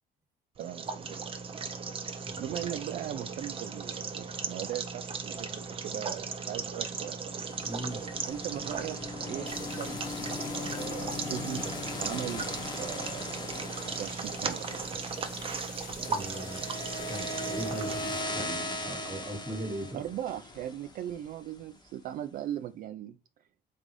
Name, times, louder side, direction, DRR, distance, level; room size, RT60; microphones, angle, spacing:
sound 1, 0.6-18.0, right 5 dB, 35° right, 0.7 m, -37 dB
voice 1, 0.6-1.3 2.4-7.3 8.3-9.0 9.2-10.0 10.5-12.5 12.8-14.8 19.9-23.2, right 11 dB, 55° right, 0.4 m, -39 dB
sound 2, 7.4-21.6, left 2 dB, 25° left, 1.0 m, -39 dB
voice 2, 7.6-8.0 16.1-16.6 17.1-20.0, right 1 dB, 15° right, 1.3 m, -39 dB
sound 3, 9.4-18.2, left 7 dB, 55° left, 0.8 m, -48 dB
3.8 x 3.7 x 3.2 m
cardioid pair, 110°, 17 cm